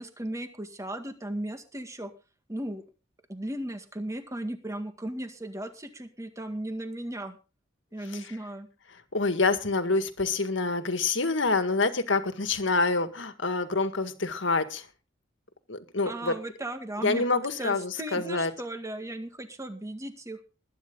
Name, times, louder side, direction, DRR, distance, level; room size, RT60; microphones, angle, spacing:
voice 1, 0.0-2.1 2.5-2.8 3.3-7.4 7.9-8.7 16.0-20.4, right 1 dB, 15° right, 7 dB, 1.9 m, -36 dB
voice 2, 9.1-14.9 15.7-16.4 17.0-18.5, left 3 dB, 65° left, 9 dB, 1.9 m, -27 dB
20.5 x 10.5 x 3.9 m, 0.33 s
head